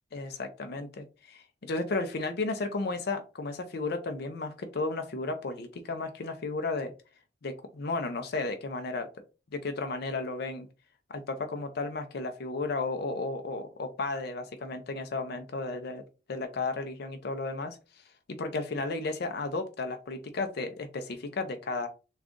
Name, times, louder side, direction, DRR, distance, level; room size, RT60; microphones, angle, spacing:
voice 1, 0.1-6.9 7.4-9.1 9.5-10.7 11.1-16.0 16.3-17.8 18.4-21.9, left 3 dB, 60° left, 7 dB, 0.5 m, -33 dB
3.6 x 2.4 x 3.6 m, 0.32 s
head